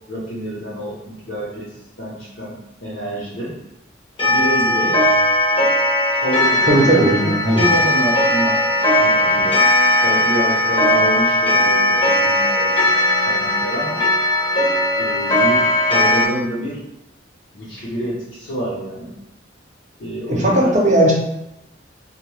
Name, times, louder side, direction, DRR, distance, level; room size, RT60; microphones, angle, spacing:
voice 1, 0.1-3.6 4.2-5.0 6.1-8.6 9.0-9.6 10.0-12.9 13.2-14.0 15.0-16.8 17.5-19.1 20.0-20.8, equal, 75° left, -9 dB, 0.8 m, -27 dB
Clock, 4.2-16.3, left 1 dB, 25° left, 0.6 m, -17 dB
voice 2, 6.7-7.6 20.3-21.1, right 1 dB, 40° right, -2 dB, 0.6 m, -16 dB
2.6 x 2.1 x 3.1 m, 0.88 s
head